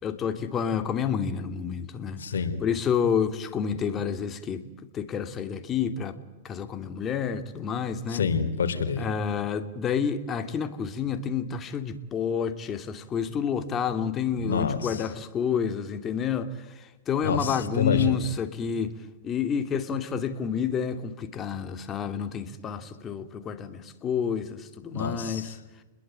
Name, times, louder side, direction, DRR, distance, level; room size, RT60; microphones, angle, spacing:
voice 1, 0.0-2.2 2.6-4.6 4.9-6.2 6.4-8.2 9.0-18.9 19.2-25.6, left 7 dB, 30° left, 9 dB, 2.7 m, -29 dB
voice 2, 2.2-2.6 8.1-9.0 14.4-14.8 17.2-18.2 24.9-25.4, left 5 dB, 85° left, 6 dB, 3.8 m, -27 dB
29.5 x 21.5 x 9.2 m, 1.1 s
hypercardioid pair, 120°, 0 cm